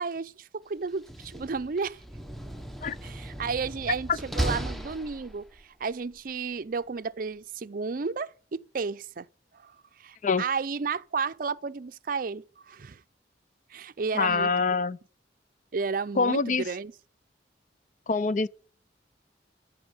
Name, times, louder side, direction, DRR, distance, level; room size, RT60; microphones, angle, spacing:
voice 1, 0.0-2.0 3.0-9.3 9.5-13.0 13.7-14.5 15.7-16.9, right 5 dB, 50° right, 0.5 m, -33 dB
Slam, 0.9-5.6, right 1 dB, ahead, 1.0 m, -36 dB
voice 2, 14.1-15.0 16.2-16.7 18.1-18.5, left 4 dB, 45° left, 0.5 m, -25 dB
14.5 x 5.6 x 9.7 m
head